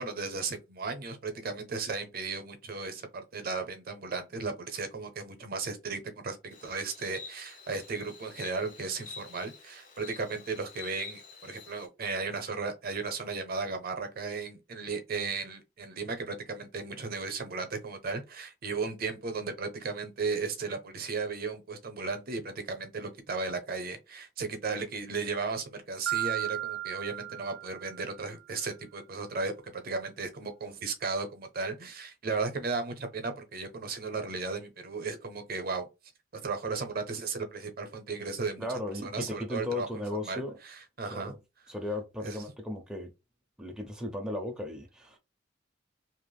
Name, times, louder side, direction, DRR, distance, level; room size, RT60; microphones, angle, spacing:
voice 1, 0.0-35.9 36.3-38.7 39.0-41.3 42.2-42.4, right 4 dB, 50° right, 0.7 m, -35 dB
Insect, 6.5-11.9, left 5 dB, 40° left, 0.9 m, -48 dB
Marimba xylophone, 26.1-28.3, right 14 dB, 80° right, 0.3 m, -35 dB
voice 2, 38.6-40.6 41.1-41.3 41.7-43.1 43.6-45.2, left 1 dB, 5° right, 0.6 m, -36 dB
3.2 x 2.9 x 2.2 m
head